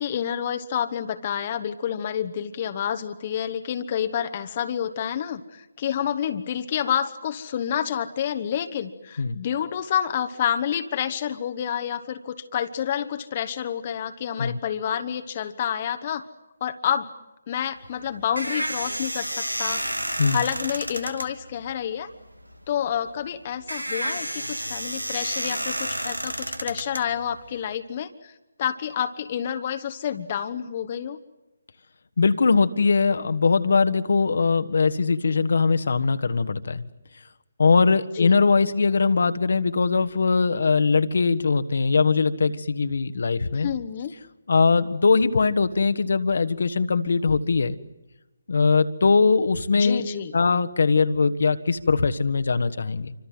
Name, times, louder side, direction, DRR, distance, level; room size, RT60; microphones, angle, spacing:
voice 1, 0.0-16.2 16.6-17.1 17.5-19.8 20.3-22.1 22.7-28.3 28.6-31.2 38.1-38.4 43.5-44.1 49.7-50.3, left 9 dB, 35° left, 8 dB, 1.2 m, -29 dB
sound 1, 17.8-27.7, right 1 dB, 90° right, 2.2 m, -31 dB
voice 2, 32.2-36.8 37.6-43.7 44.5-47.8 48.5-50.0 50.3-53.1, left 4 dB, 55° left, 10 dB, 1.5 m, -21 dB
28.0 x 25.5 x 7.7 m, 1.0 s
figure-of-eight pair, 145°, 0 cm